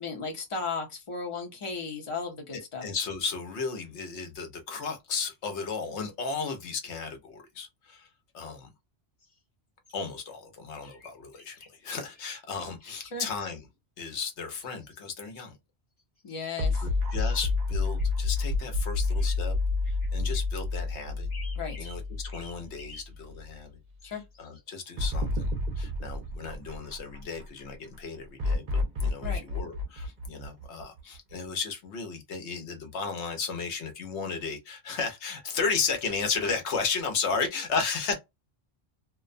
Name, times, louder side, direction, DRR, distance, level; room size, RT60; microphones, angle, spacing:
voice 1, 0.0-2.8 13.1-13.3 16.2-16.9 21.6-21.9 24.0-24.2 29.2-29.4, left 4 dB, 30° left, 0.8 m, -35 dB
voice 2, 2.8-8.1 8.3-8.7 9.9-13.7 14.0-15.6 16.8-19.5 19.9-21.3 21.8-23.8 24.1-38.2, left 5 dB, 90° left, 1.1 m, -34 dB
sound 1, 9.2-9.4 9.8-10.1 10.8-11.7 12.0-13.0 14.5-15.4 16.0-16.6 17.5-17.7 18.0-18.1 19.1-19.4 19.8-20.4 21.3-22.0 22.3-23.1 24.0-24.8 26.1-26.6, left 2 dB, 65° left, 1.3 m, -51 dB
sound 2, 16.6-22.9 23.3-23.4 25.0-27.4 28.4-31.2, left 3 dB, 50° right, 0.7 m, -29 dB
2.5 x 2.2 x 2.4 m
omnidirectional pair, 1.1 m